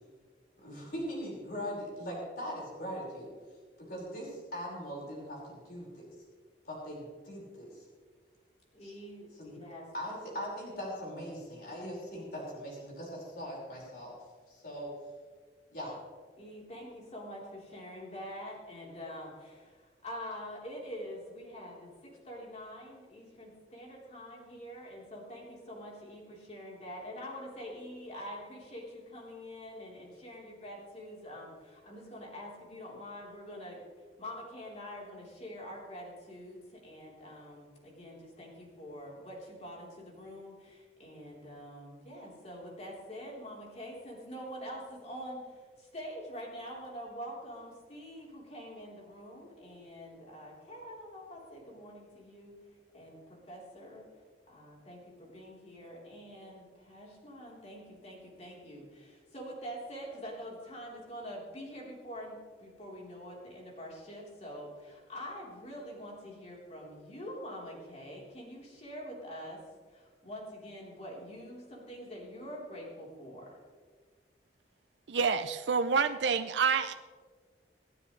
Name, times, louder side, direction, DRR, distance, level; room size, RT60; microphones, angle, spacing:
voice 1, 0.6-3.3 3.9-6.1 6.7-7.7 9.4-9.6 9.9-14.1 14.5-14.9 15.7-15.9, equal, 55° left, -4 dB, 5.1 m, -40 dB
voice 2, 8.7-9.9 16.4-33.8 34.2-54.1 54.5-69.6 69.9-73.6, equal, 35° left, -3 dB, 3.8 m, -45 dB
voice 3, 75.1-76.9, right 5 dB, 80° right, 9 dB, 0.5 m, -28 dB
27.5 x 9.7 x 3.3 m, 1.5 s
head